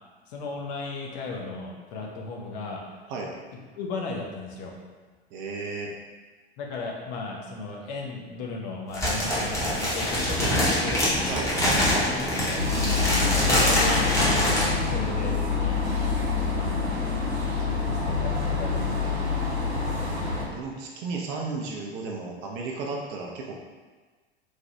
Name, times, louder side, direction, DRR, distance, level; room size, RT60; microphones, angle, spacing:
voice 1, 0.3-3.0 3.7-4.7 6.6-11.0 12.0-12.6 13.4-15.8 16.5-17.3 17.6-19.5, left 3 dB, 45° left, -1 dB, 0.6 m, -35 dB
voice 2, 5.3-5.9 11.3-11.5 20.4-23.6, right 3 dB, 35° right, -1 dB, 0.4 m, -34 dB
sound 1, 8.9-14.7, equal, 10° left, 0.8 m, -24 dB
sound 2, 9.8-12.6, left 1 dB, 70° left, 0.9 m, -42 dB
sound 3, 12.6-20.4, left 4 dB, 85° right, 0.8 m, -26 dB
3.2 x 2.2 x 2.7 m, 1.4 s
figure-of-eight pair, 80°, 32 cm